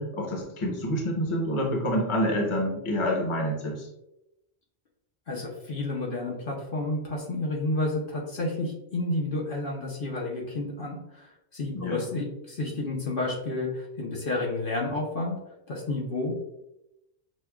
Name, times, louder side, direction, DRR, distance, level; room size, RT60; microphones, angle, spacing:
voice 1, 0.0-3.9 11.7-12.0, equal, 30° left, -1 dB, 0.8 m, -27 dB
voice 2, 5.3-15.4 15.7-16.3, left 2 dB, 60° left, -3 dB, 0.9 m, -30 dB
6.3 x 2.2 x 2.2 m, 0.87 s
omnidirectional pair, 1.1 m